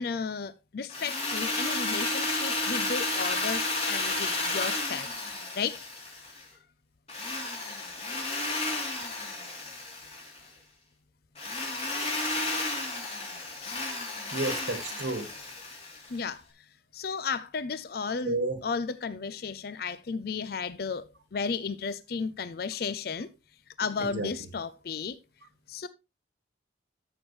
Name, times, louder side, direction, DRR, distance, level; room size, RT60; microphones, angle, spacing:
voice 1, 0.0-5.1 5.5-5.8 13.6-13.8 16.1-16.7 16.9-23.3 23.8-25.2 25.7-25.9, left 5 dB, 55° left, 0.5 m, -34 dB
Drill, 0.9-6.4 7.1-10.4 11.4-16.2, left 2 dB, 35° left, 3.2 m, -32 dB
voice 2, 14.3-15.3 18.2-18.6 24.0-24.3, right 2 dB, 80° right, 1.4 m, -31 dB
13.5 x 6.3 x 3.1 m
head